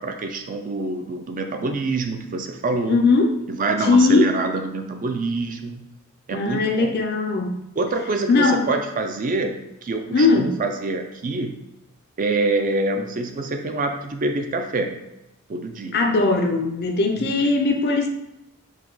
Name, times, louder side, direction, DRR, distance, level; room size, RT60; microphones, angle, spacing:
voice 1, 0.0-3.0 3.5-5.9 6.3-6.9 7.8-11.6 12.2-14.9 15.5-16.0 17.2-17.5, right 3 dB, 40° right, 5 dB, 0.4 m, -26 dB
voice 2, 2.9-3.3 3.8-4.3 6.3-7.5 8.3-8.6 10.1-10.5 15.9-18.1, left 3 dB, 50° left, 3 dB, 0.5 m, -19 dB
4.7 x 2.3 x 3.8 m, 0.89 s
head